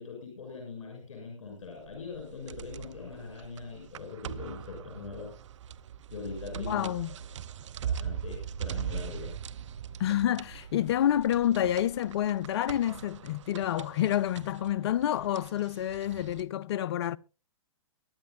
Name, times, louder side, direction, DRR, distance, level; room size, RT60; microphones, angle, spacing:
voice 1, 0.0-5.3 6.1-6.9 7.8-9.4, left 4 dB, 65° left, 6.2 m, -42 dB
sound 1, 1.6-16.4, right 8 dB, 65° right, 0.7 m, -41 dB
voice 2, 6.6-7.1 10.0-17.2, left 11 dB, 50° left, 0.5 m, -28 dB
23.5 x 10.5 x 2.5 m
hypercardioid pair, 125°, 17 cm